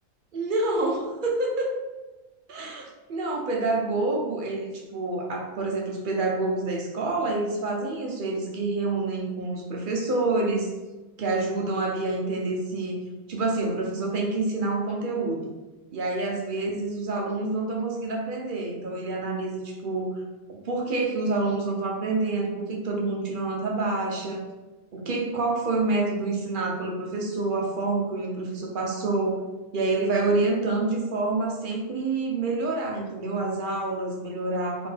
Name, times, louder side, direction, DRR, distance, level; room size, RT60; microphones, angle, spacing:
voice 1, 0.3-1.9 2.6-10.7 11.2-13.0 13.3-15.4 15.9-20.2 20.5-24.4 24.9-29.4 29.7-34.9, right 2 dB, 50° right, 0 dB, 0.6 m, -27 dB
4.0 x 2.9 x 3.3 m, 1.1 s
omnidirectional pair, 1.5 m